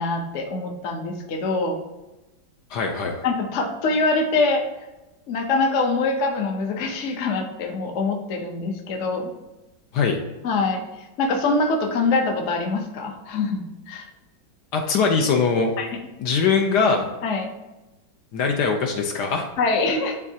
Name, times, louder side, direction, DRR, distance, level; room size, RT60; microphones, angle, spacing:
voice 1, 0.0-1.8 3.2-4.6 5.3-9.3 10.4-10.8 11.2-14.1 15.8-15.9 17.2-17.5 19.6-20.2, left 3 dB, 55° left, 4 dB, 0.9 m, -24 dB
voice 2, 2.7-3.2 9.9-10.2 14.7-15.7 16.2-17.1 18.3-19.5, left 5 dB, 70° left, 3 dB, 1.2 m, -21 dB
10.5 x 3.6 x 2.8 m, 1.0 s
omnidirectional pair, 2.1 m